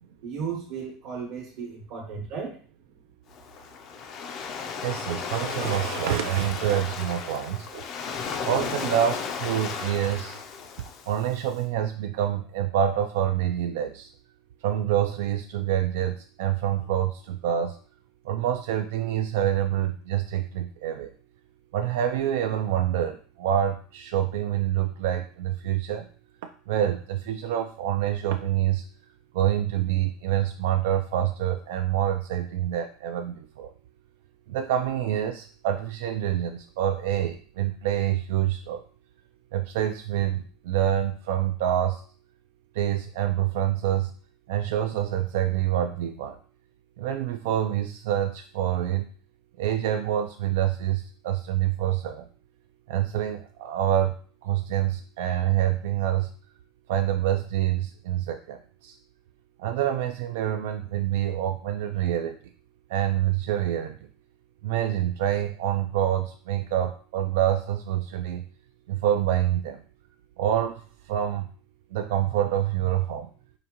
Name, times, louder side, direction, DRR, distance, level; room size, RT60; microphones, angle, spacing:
voice 1, 0.2-2.6, right 6 dB, 50° right, -4 dB, 1.0 m, -35 dB
Waves surf, 3.3-11.5, left 6 dB, 35° left, 0.4 m, -34 dB
voice 2, 4.8-7.8 8.5-10.4 11.1-14.1 14.6-17.8 18.3-21.1 21.7-26.0 26.7-28.8 29.3-33.7 34.5-38.8 39.5-42.0 42.8-44.1 44.5-46.4 47.0-49.0 49.6-52.2 52.9-54.2 54.4-56.3 56.9-58.9 59.6-62.4 62.9-64.0 64.6-68.4 68.9-69.8 70.4-70.8 71.1-71.5 71.9-73.3, right 11 dB, 70° right, 6 dB, 0.3 m, -26 dB
4.9 x 2.6 x 2.9 m, 0.40 s
supercardioid pair, 175°, 0 cm